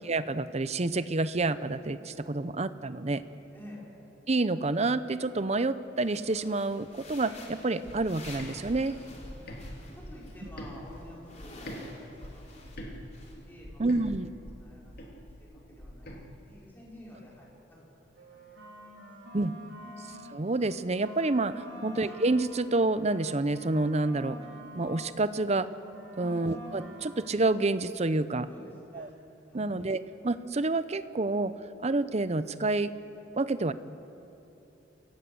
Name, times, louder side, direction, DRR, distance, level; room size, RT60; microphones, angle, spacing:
voice 1, 0.1-3.2 4.3-9.0 13.8-14.3 19.3-19.5 20.3-24.4 24.7-25.7 26.2-28.5 28.9-29.1 29.5-31.5 31.8-32.9 33.3-33.7, right 2 dB, 35° right, 13 dB, 0.7 m, -28 dB
voice 2, 3.5-3.9 9.3-9.6 10.0-13.0 13.5-13.8 14.1-19.0 19.8-19.9 21.7-22.0 26.1-26.4 28.5-29.1 29.4-29.9, left 1 dB, 10° left, -5 dB, 5.7 m, -51 dB
sound 1, 6.0-10.4 10.7-12.8 13.1-13.3, left 2 dB, 40° left, 4.1 m, -50 dB
sound 2, 7.8-11.8 12.2-16.2, equal, 55° left, 3.1 m, -44 dB
sound 3, 18.1-20.4 20.7-25.1 25.4-27.4, equal, 85° right, 4.1 m, -47 dB
28.0 x 17.0 x 7.9 m, 2.9 s
head